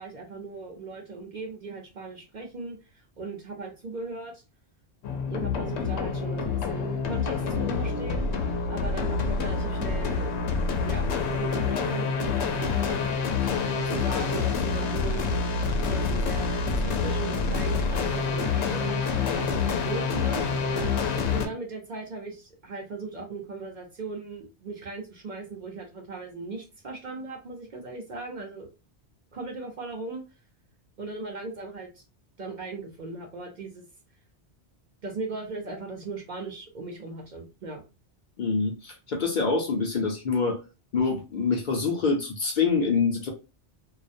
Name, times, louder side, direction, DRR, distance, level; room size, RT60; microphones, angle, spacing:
voice 1, 0.0-4.4 5.3-10.3 10.9-13.5 13.8-15.5 15.8-19.0 19.3-20.7 21.3-28.7 29.3-30.2 31.0-32.0 32.4-33.8 35.0-37.8, right 3 dB, 50° right, 0.7 m, -38 dB
sound 1, 5.0-21.5, left 4 dB, 85° left, 0.9 m, -27 dB
voice 2, 38.4-40.6 40.9-43.3, left 4 dB, 55° left, 0.6 m, -25 dB
2.3 x 2.1 x 2.5 m
omnidirectional pair, 1.1 m